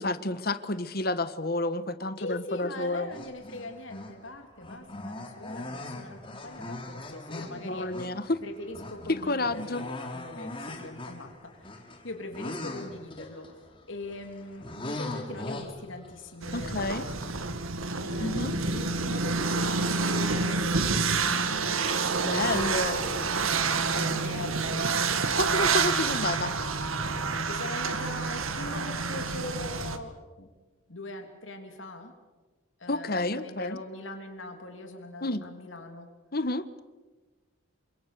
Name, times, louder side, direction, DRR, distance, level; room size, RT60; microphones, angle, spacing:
voice 1, 0.0-3.1 7.6-8.4 9.1-9.8 16.5-17.0 18.2-18.5 22.2-23.0 25.3-26.6 32.9-33.8 35.2-35.5 36.3-36.8, left 2 dB, 45° left, 13 dB, 1.3 m, -30 dB
voice 2, 2.2-8.1 8.4-11.7 12.0-13.5 13.9-17.2 18.0-22.0 22.9-25.0 27.5-30.5 30.9-32.1 32.8-36.1, left 2 dB, 70° left, 4 dB, 3.2 m, -41 dB
sound 1, 3.1-4.3 4.6-18.3 18.5-22.1 22.5-22.7, left 2 dB, 25° left, 3.4 m, -42 dB
sound 2, 16.4-30.0, right 4 dB, 85° right, 2.0 m, -28 dB
29.0 x 25.5 x 6.9 m, 1.3 s
head